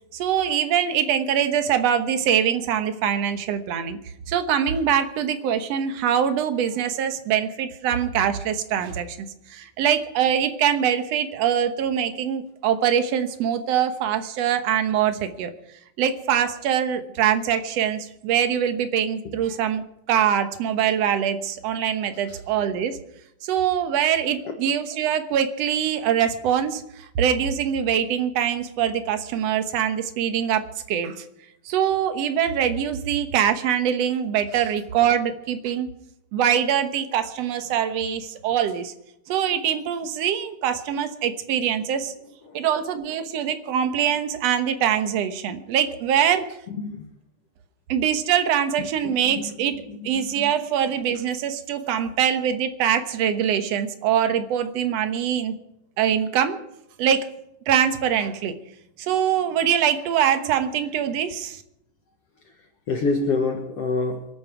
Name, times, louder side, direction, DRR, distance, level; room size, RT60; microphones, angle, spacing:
voice 1, 0.1-4.0 4.3-15.5 16.0-23.0 23.4-31.2 31.7-35.9 36.3-38.9 39.3-42.1 42.5-46.5 47.9-55.6 56.0-56.6 57.0-57.3 57.7-58.5 59.0-61.6, right 9 dB, 60° right, 9 dB, 2.1 m, -23 dB
voice 2, 50.0-50.5 62.9-64.3, left 3 dB, 55° left, 3 dB, 2.3 m, -27 dB
26.0 x 9.3 x 4.6 m, 0.82 s
omnidirectional pair, 3.6 m